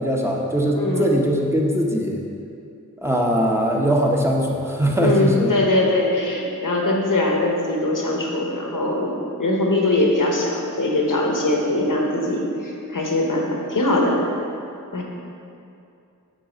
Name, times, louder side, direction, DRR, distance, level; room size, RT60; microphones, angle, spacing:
voice 1, 0.0-2.2 3.0-5.5, equal, 10° right, -1 dB, 0.9 m, -21 dB
voice 2, 0.7-1.1 5.0-14.2 14.9-15.0, left 2 dB, 75° left, -1 dB, 1.0 m, -21 dB
7.6 x 3.9 x 5.1 m, 2.6 s
wide cardioid pair, 50°, 32 cm